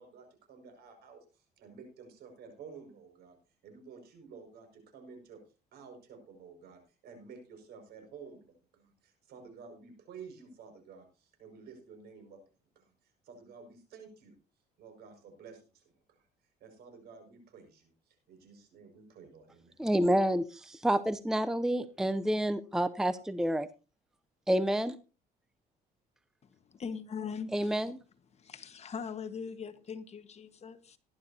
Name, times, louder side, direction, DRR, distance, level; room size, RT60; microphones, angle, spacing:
voice 1, 0.0-3.4 3.6-5.4 5.7-12.4 12.8-12.9 13.2-14.3 14.8-16.2 16.6-19.8, right 5 dB, 70° right, 5.6 m, -52 dB
voice 2, 19.8-20.4 20.8-23.7 24.5-25.0 27.5-28.0, right 1 dB, 5° right, 0.6 m, -28 dB
voice 3, 26.4-27.8 28.3-31.0, left 6 dB, 40° left, 1.4 m, -41 dB
18.5 x 11.5 x 2.8 m
cardioid pair, 110°, 17 cm